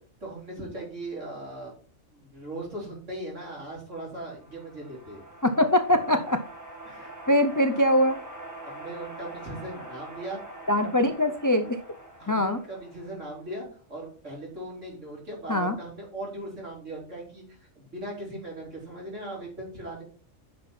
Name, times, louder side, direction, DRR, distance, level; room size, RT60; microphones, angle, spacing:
voice 1, 0.2-1.7 2.1-5.2 6.8-7.2 8.6-10.4 12.2-20.0, right 1 dB, 65° right, -3 dB, 4.2 m, -39 dB
sound 1, 4.0-13.6, right 2 dB, 15° right, 1.7 m, -44 dB
voice 2, 5.4-6.4 7.3-8.2 10.7-11.8 12.3-12.6 15.5-15.7, left 1 dB, 30° left, 8 dB, 0.4 m, -22 dB
9.6 x 5.8 x 4.2 m, 0.40 s
omnidirectional pair, 1.4 m